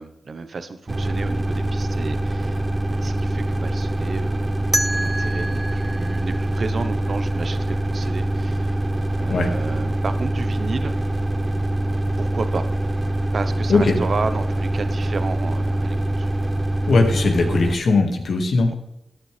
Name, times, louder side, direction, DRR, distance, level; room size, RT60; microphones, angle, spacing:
voice 1, 0.0-2.6 3.0-4.6 4.9-8.7 9.2-10.9 12.2-12.7 13.3-16.3 18.7-18.8, right 4 dB, 60° right, 10 dB, 1.1 m, -32 dB
sound 1, 0.9-17.8, right 1 dB, 30° right, 1.2 m, -24 dB
sound 2, 4.7-7.6, right 1 dB, 10° right, 0.5 m, -29 dB
voice 2, 16.9-18.7, left 3 dB, 75° left, 3 dB, 2.2 m, -19 dB
14.5 x 10.0 x 3.5 m, 0.86 s
cardioid pair, 55°, 0 cm